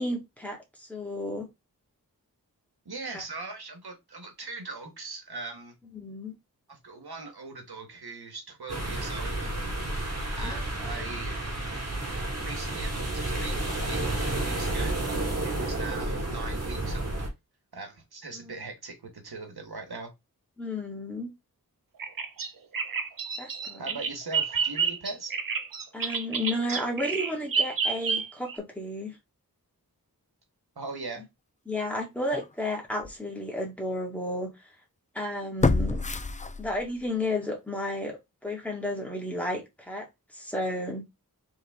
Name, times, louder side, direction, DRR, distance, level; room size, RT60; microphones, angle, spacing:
voice 1, 0.0-1.5 3.1-3.2 5.9-6.3 10.4-10.6 18.3-18.6 20.6-21.3 23.4-24.0 25.9-29.2 31.7-34.5 35.1-36.0 36.6-40.1 40.3-41.0, left 1 dB, 5° left, 1.9 m, -32 dB
voice 2, 2.8-5.7 6.7-9.5 10.3-11.4 12.3-17.3 17.7-20.1 23.8-25.4 30.7-31.2, right 3 dB, 85° right, 1.4 m, -40 dB
sound 1, 8.7-17.3, right 1 dB, 45° right, 1.6 m, -31 dB
Bird vocalization bird call bird song, 22.0-28.6, right 5 dB, 65° right, 0.7 m, -29 dB
sound 2, 32.3-32.5 33.0-33.1 35.6-37.1 37.4-37.5, left 3 dB, 20° left, 0.4 m, -27 dB
3.9 x 3.7 x 3.5 m
wide cardioid pair, 75°, 37 cm